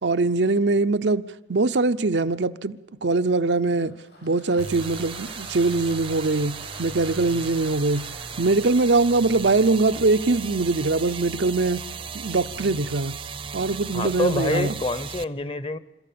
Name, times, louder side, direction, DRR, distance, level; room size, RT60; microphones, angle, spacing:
voice 1, 0.0-3.9 4.2-8.0 8.4-11.8 12.1-13.1 13.5-14.8, right 3 dB, 85° right, 0.7 m, -22 dB
Applause, 3.6-9.8, left 1 dB, 70° left, 7.6 m, -47 dB
sound 1, 4.6-15.2, right 5 dB, 30° right, 0.6 m, -36 dB
voice 2, 13.9-15.8, left 2 dB, 30° left, 0.8 m, -26 dB
27.0 x 14.0 x 8.6 m
head